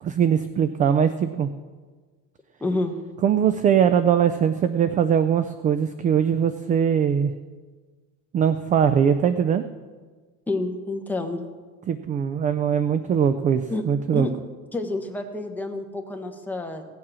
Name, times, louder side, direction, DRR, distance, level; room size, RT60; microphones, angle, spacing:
voice 1, 0.0-1.5 3.2-7.3 8.3-9.6 11.9-14.3, right 8 dB, 25° right, 11 dB, 0.3 m, -21 dB
voice 2, 2.6-3.0 10.5-11.5 13.7-13.8 14.1-14.3 14.7-16.9, left 2 dB, 5° left, 3 dB, 1.1 m, -28 dB
17.0 x 7.4 x 6.2 m, 1.4 s
cardioid pair, 170°, 31 cm